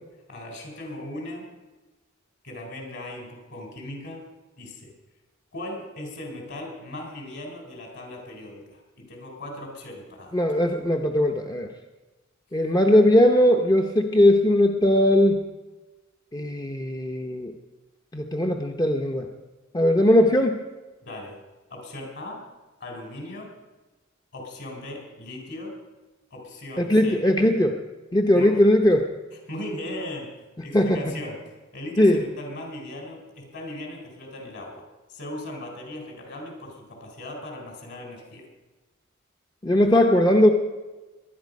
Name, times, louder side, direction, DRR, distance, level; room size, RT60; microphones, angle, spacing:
voice 1, 0.3-1.5 2.4-4.2 4.6-4.9 5.5-10.4 21.0-21.4 21.7-22.4 22.8-23.5 24.3-25.8 26.3-27.2 28.3-28.6 29.5-30.3 30.6-31.4 31.7-38.5, left 1 dB, 60° left, 1 dB, 4.3 m, -38 dB
voice 2, 10.3-11.7 12.5-15.4 16.3-17.5 18.1-19.3 19.7-20.6 26.8-27.8 28.1-29.1 30.7-31.1 32.0-32.2 39.6-40.5, left 1 dB, 20° left, 3 dB, 0.8 m, -19 dB
20.0 x 11.5 x 5.3 m, 1.2 s
head